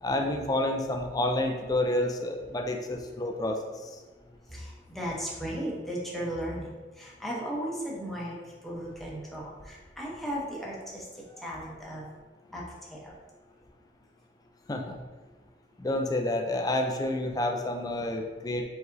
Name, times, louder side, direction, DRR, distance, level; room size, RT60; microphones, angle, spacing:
voice 1, 0.0-3.6 11.3-11.5 14.7-15.0 15.8-18.6, left 1 dB, 20° left, 3 dB, 0.4 m, -29 dB
voice 2, 4.5-6.7 7.0-12.0 12.5-12.6 12.9-13.1, equal, ahead, -5 dB, 0.8 m, -36 dB
4.7 x 4.1 x 2.6 m, 1.3 s
head